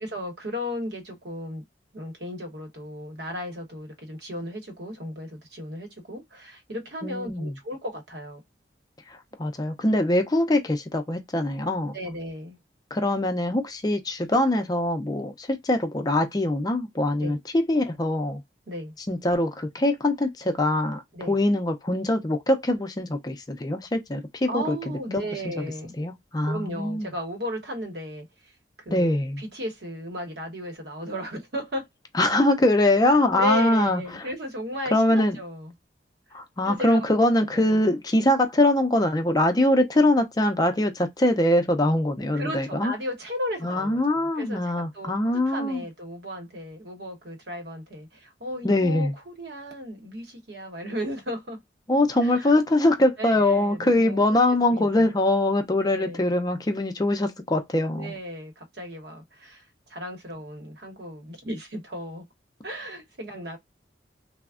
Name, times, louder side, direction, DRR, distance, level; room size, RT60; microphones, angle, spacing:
voice 1, 0.0-1.6 1.9-8.4 11.9-12.6 17.2-17.3 18.7-18.9 21.1-21.4 24.5-26.0 26.5-28.3 28.8-31.9 33.4-35.7 36.6-37.2 37.5-37.8 42.3-51.6 52.2-52.6 53.2-54.4 54.7-55.1 55.9-56.2 58.0-59.6 59.9-62.2 62.6-63.6, equal, 70° right, 0.9 m, -35 dB
voice 2, 7.0-7.5 9.1-11.9 12.9-18.4 19.1-24.8 25.1-25.2 25.6-25.7 26.0-27.1 28.9-29.4 32.2-34.3 34.9-35.4 36.3-42.9 43.6-45.9 48.6-49.1 51.9-58.1, left 1 dB, 20° left, 0.4 m, -23 dB
3.3 x 2.0 x 2.3 m
head